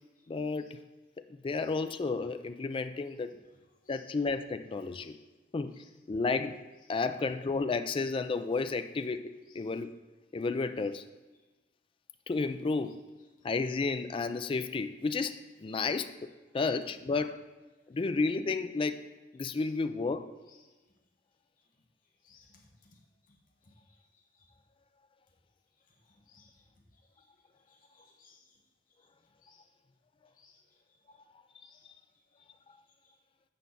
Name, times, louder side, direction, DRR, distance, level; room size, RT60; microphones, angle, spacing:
voice 1, 0.3-0.7 1.3-3.3 3.9-5.2 5.5-5.7 6.1-6.6 6.9-9.9 10.3-11.0 12.3-13.0 13.4-17.4 17.9-19.0 19.3-20.3 31.1-31.2, left 4 dB, 30° left, 9 dB, 0.3 m, -32 dB
voice 2, 22.2-23.0 23.3-23.4 23.6-23.7 24.1-24.5 26.3-26.6 27.2-27.3 27.7-28.6 29.4-29.7 30.4-30.6 31.6-31.9, left 5 dB, 45° left, 1 dB, 1.2 m, -63 dB
8.3 x 5.6 x 4.0 m, 1.2 s
head